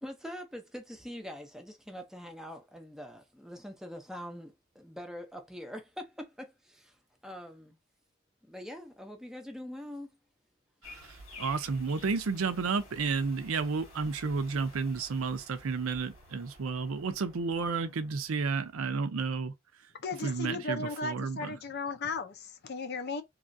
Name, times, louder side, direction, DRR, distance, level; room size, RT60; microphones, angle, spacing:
voice 1, 0.0-7.0 7.2-7.8 8.4-10.1, equal, ahead, 0.6 m, -44 dB
sound 1, 10.8-19.1, left 1 dB, 90° left, 1.8 m, -52 dB
voice 2, 10.8-19.5 20.2-21.6, right 4 dB, 80° right, 0.5 m, -32 dB
voice 3, 20.0-23.2, left 3 dB, 50° left, 0.6 m, -36 dB
3.0 x 2.4 x 2.6 m
head